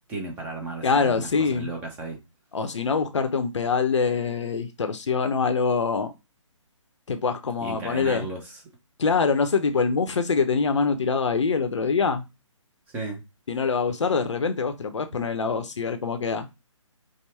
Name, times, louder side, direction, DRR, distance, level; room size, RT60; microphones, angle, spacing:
voice 1, 0.1-2.2 7.6-8.4 12.9-13.2, right 2 dB, 10° right, 0.7 m, -34 dB
voice 2, 0.8-1.7 2.5-6.1 7.1-8.3 9.0-12.2 13.5-16.5, left 5 dB, 65° left, 0.7 m, -24 dB
5.4 x 2.1 x 3.2 m
figure-of-eight pair, 140°, 17 cm